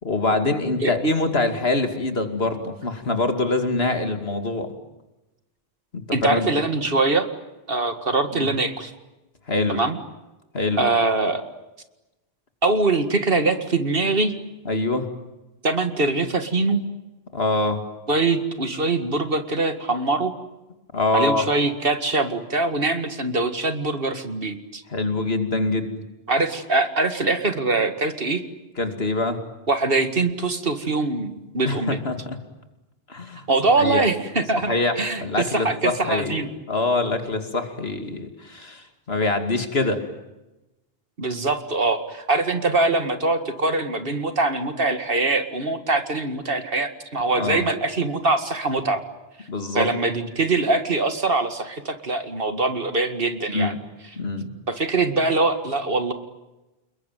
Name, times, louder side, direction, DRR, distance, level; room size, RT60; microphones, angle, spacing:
voice 1, 0.0-4.7 5.9-6.5 8.3-8.5 9.5-9.8 10.5-10.8 14.6-15.1 17.3-17.8 20.9-21.4 24.9-26.0 28.8-29.4 31.7-32.4 33.1-33.4 33.8-34.0 34.7-40.0 47.4-47.6 49.5-49.9 53.5-53.8 54.2-54.5, left 2 dB, 70° left, 7 dB, 2.8 m, -24 dB
voice 2, 6.1-7.3 7.7-8.9 9.7-10.0 10.8-11.4 12.6-14.3 15.6-16.8 18.1-20.3 21.1-24.8 26.3-28.4 29.7-32.0 33.5-36.5 41.2-49.0 49.7-53.7 54.7-56.1, right 3 dB, 60° right, 8 dB, 2.2 m, -23 dB
29.0 x 21.5 x 9.3 m, 1.0 s
omnidirectional pair, 1.1 m